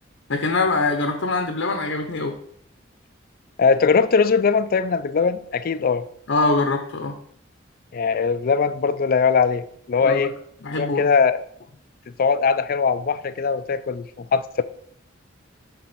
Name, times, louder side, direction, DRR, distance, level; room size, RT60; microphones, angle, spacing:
voice 1, 0.3-2.4 6.3-7.2 10.0-10.3 10.6-11.1, left 3 dB, 75° left, 0.8 m, -23 dB
voice 2, 3.6-6.0 7.9-10.3 10.8-11.4 12.2-14.6, left 5 dB, 50° left, 0.4 m, -20 dB
6.9 x 4.1 x 5.9 m
head